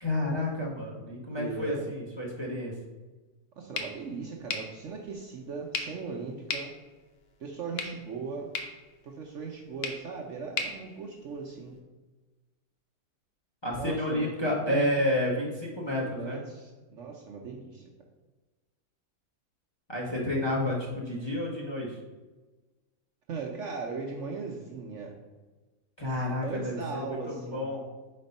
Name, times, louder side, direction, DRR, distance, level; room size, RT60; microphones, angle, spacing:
voice 1, 0.0-2.7 13.6-16.4 19.9-22.0 26.0-27.8, left 1 dB, 20° left, -4 dB, 1.1 m, -30 dB
voice 2, 1.3-1.9 3.6-6.7 7.4-8.5 9.0-11.7 13.7-14.9 16.0-17.8 23.3-25.1 26.0-27.7, right 4 dB, 60° right, 0 dB, 1.0 m, -38 dB
sound 1, 3.7-11.8, left 4 dB, 50° left, 0.9 m, -40 dB
5.0 x 4.3 x 5.3 m, 1.2 s
omnidirectional pair, 1.6 m